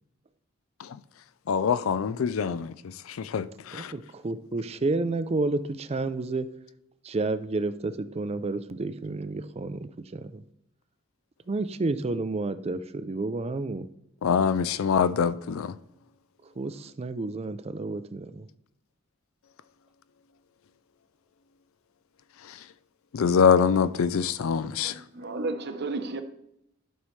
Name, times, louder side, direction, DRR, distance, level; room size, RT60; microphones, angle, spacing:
voice 1, 1.5-2.7 3.2-3.9 14.2-15.7 23.1-24.9, left 6 dB, 80° left, 0.4 m, -24 dB
voice 2, 3.7-6.5 7.0-10.4 11.5-13.9 16.6-18.5, right 3 dB, 30° right, 0.4 m, -30 dB
voice 3, 24.8-26.2, right 3 dB, 55° right, 0.8 m, -33 dB
12.0 x 5.5 x 3.2 m
head